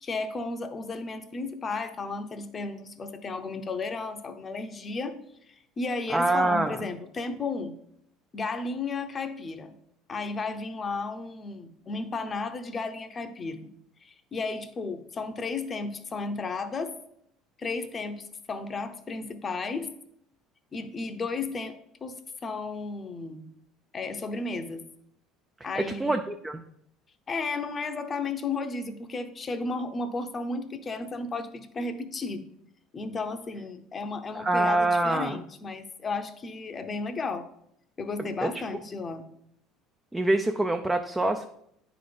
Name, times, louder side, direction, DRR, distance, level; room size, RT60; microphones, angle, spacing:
voice 1, 0.0-5.2 5.5-7.7 8.3-9.7 10.1-13.6 14.0-16.9 17.6-19.9 20.7-22.2 22.4-23.4 23.9-24.8 25.6-26.1 27.3-32.4 32.9-37.5 38.0-39.2, left 3 dB, 25° left, 9 dB, 0.7 m, -33 dB
voice 2, 6.1-6.9 25.8-26.6 34.3-35.4 38.2-38.6 40.1-41.5, right 2 dB, 10° right, 5 dB, 0.4 m, -25 dB
9.5 x 3.9 x 5.1 m, 0.72 s
cardioid pair, 135°, 0 cm